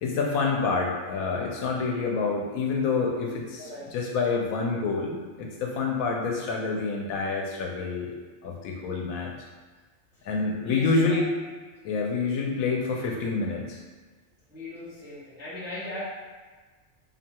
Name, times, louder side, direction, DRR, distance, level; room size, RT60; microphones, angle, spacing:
voice 1, 0.0-8.2 8.4-9.3 10.3-11.3 11.8-13.8, left 4 dB, 85° left, 0 dB, 1.0 m, -27 dB
voice 2, 3.6-4.1 10.6-11.3 14.5-16.0, left 2 dB, 15° right, -10 dB, 0.4 m, -38 dB
2.7 x 2.2 x 2.8 m, 1.4 s
omnidirectional pair, 1.4 m